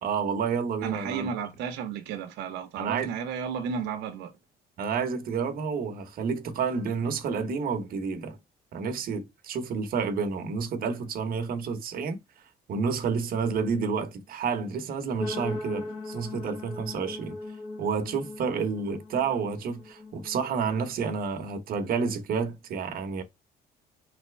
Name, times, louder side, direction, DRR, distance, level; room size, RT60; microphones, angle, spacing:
voice 1, 0.0-1.3 2.8-3.1 4.8-8.4 8.7-12.2 12.7-17.4 17.8-23.2, right 5 dB, 60° right, 1.2 m, -30 dB
voice 2, 0.8-4.3, right 7 dB, 85° right, 1.0 m, -33 dB
sound 1, 15.2-21.1, left 2 dB, 25° left, 1.8 m, -39 dB
4.3 x 3.5 x 3.3 m
cardioid pair, 110°, 17 cm